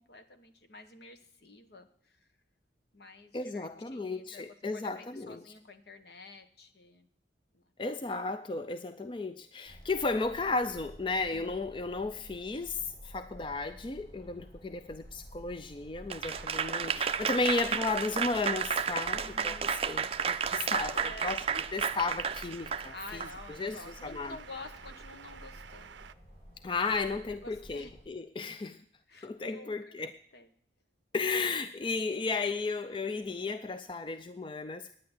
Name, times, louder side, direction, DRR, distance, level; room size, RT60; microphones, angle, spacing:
voice 1, 0.0-2.3 2.9-7.1 7.5-7.6 11.3-11.6 19.2-19.7 20.9-21.4 22.9-26.0 27.1-27.9 29.1-30.5 31.9-32.0, left 2 dB, 60° left, 8 dB, 1.2 m, -50 dB
voice 2, 3.3-5.4 7.8-21.0 21.2-21.4 21.7-24.4 26.6-28.8 29.2-30.1 31.1-34.9, left 3 dB, 30° left, 10 dB, 0.4 m, -34 dB
sound 1, 9.7-28.0, equal, 45° left, 8.0 m, -52 dB
Applause / Crowd, 16.1-23.3, right 7 dB, 35° right, 0.4 m, -32 dB
sound 2, 16.3-26.1, right 7 dB, 85° right, 0.5 m, -50 dB
10.5 x 9.4 x 7.9 m, 0.62 s
head